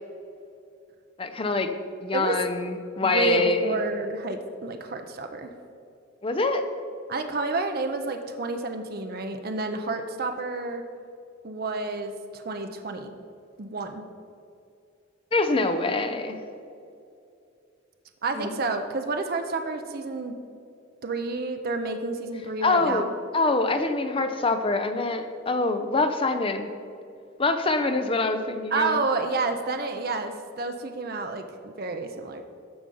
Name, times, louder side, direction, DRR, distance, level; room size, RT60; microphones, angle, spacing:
voice 1, 1.2-1.7 2.0-3.8 6.2-6.6 15.3-16.4 18.4-18.5 22.6-23.1 23.3-26.7 27.4-29.0, left 3 dB, 25° left, 7 dB, 0.6 m, -25 dB
voice 2, 3.0-5.5 7.1-10.8 11.4-13.1 13.6-14.0 18.2-20.4 21.0-23.1 28.7-32.4, right 3 dB, 50° right, 6 dB, 0.6 m, -30 dB
14.0 x 4.9 x 5.5 m, 2.5 s
head